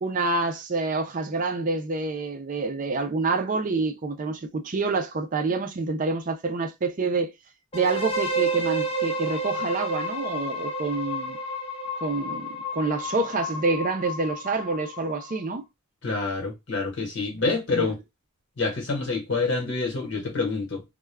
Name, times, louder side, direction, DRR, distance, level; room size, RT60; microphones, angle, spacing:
voice 1, 0.0-7.3 7.7-11.4 12.0-15.6 17.7-17.9, right 3 dB, 35° right, 0.4 m, -27 dB
sound 1, 7.7-15.5, right 1 dB, 25° left, 0.5 m, -31 dB
voice 2, 16.0-18.0 18.6-20.8, left 3 dB, 55° left, 1.1 m, -27 dB
2.3 x 2.2 x 3.2 m
head